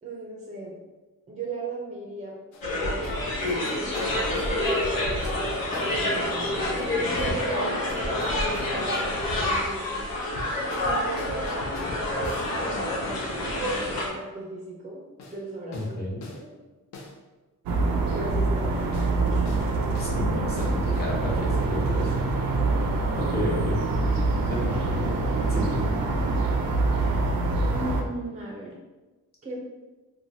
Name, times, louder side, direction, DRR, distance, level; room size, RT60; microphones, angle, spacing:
voice 1, 0.0-0.8 1.3-2.3 2.7-3.1 4.5-9.9 10.8-12.0 12.6-13.4 14.0-15.0 15.3-15.9 16.3-16.5 18.1-19.5 27.5-28.8 29.4-29.6, right 2 dB, 20° right, -2 dB, 0.5 m, -37 dB
sound 1, 2.5-2.6 3.0-3.2 3.5-6.1 6.8-7.3 7.9-9.3 10.2-12.5 15.2-15.4 15.7-15.9 16.2-16.4 16.9-17.1 18.9-19.1 19.4-19.7 19.9-20.2 20.6-20.8, left 2 dB, 55° left, 0.5 m, -41 dB
sound 2, 2.6-14.1, left 1 dB, 85° left, 0.9 m, -27 dB
voice 2, 15.7-16.2 19.9-22.2 23.2-23.8 24.5-25.1 25.5-25.8, left 1 dB, 30° left, -4 dB, 0.8 m, -31 dB
sound 3, 17.7-28.0, right 3 dB, 75° right, 0.5 m, -25 dB
3.1 x 2.2 x 2.6 m, 1.2 s
wide cardioid pair, 150°, 34 cm